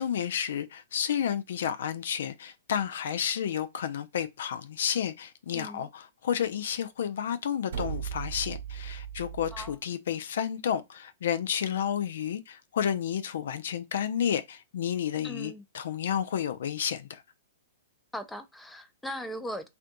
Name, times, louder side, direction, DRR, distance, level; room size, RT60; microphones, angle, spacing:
voice 1, 0.0-17.2, left 9 dB, 65° left, 0.3 m, -31 dB
voice 2, 5.5-5.9 9.5-9.8 15.2-15.6 18.1-19.7, equal, 5° left, 0.5 m, -39 dB
sound 1, 7.7-9.8, right 8 dB, 65° right, 0.9 m, -37 dB
3.3 x 2.6 x 2.5 m
figure-of-eight pair, 115°, 0 cm